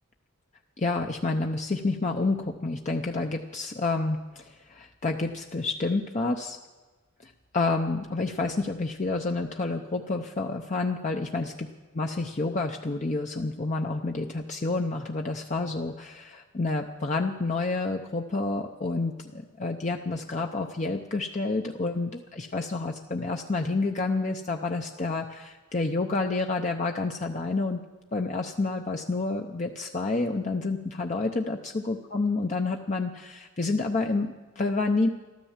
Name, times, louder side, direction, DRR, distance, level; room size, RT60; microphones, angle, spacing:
voice 1, 0.8-6.6 7.2-11.5 11.9-27.8 28.1-35.1, left 3 dB, 35° left, 3 dB, 0.7 m, -29 dB
13.5 x 13.5 x 7.3 m, 1.3 s
head